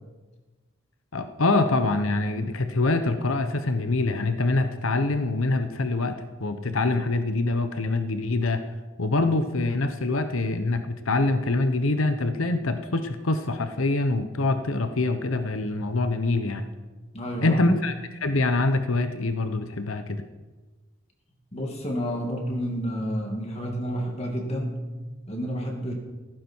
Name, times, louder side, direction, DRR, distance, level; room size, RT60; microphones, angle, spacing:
voice 1, 1.1-8.6 9.0-16.7 17.4-17.9 18.2-20.2, left 2 dB, 80° left, 8 dB, 1.0 m, -25 dB
voice 2, 17.1-17.6 21.5-24.8 25.3-25.9, equal, 30° left, 1 dB, 2.4 m, -30 dB
16.0 x 15.0 x 4.6 m, 1.2 s
head